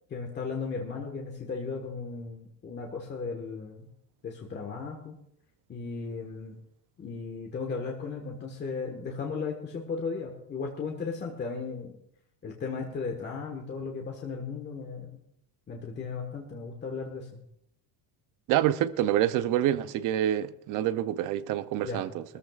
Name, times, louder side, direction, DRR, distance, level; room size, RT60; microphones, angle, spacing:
voice 1, 0.1-3.9 4.2-5.2 5.7-6.6 7.0-11.9 12.4-15.2 15.7-17.4 21.8-22.1, left 4 dB, 25° left, 1.5 m, -36 dB
voice 2, 18.5-22.2, right 12 dB, 45° right, 0.6 m, -27 dB
21.5 x 14.0 x 2.4 m
cardioid pair, 160°, 43 cm